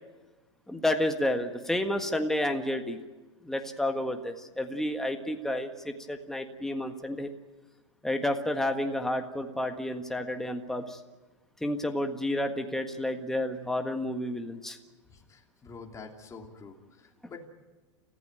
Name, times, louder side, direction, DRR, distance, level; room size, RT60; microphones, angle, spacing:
voice 1, 0.7-3.0 3.4-7.3 8.0-11.0 11.6-14.8, left 1 dB, 5° left, 5 dB, 1.6 m, -30 dB
voice 2, 15.1-17.5, left 4 dB, 20° left, 1 dB, 3.0 m, -47 dB
27.5 x 15.0 x 9.2 m, 1.2 s
hypercardioid pair, 115°, 16 cm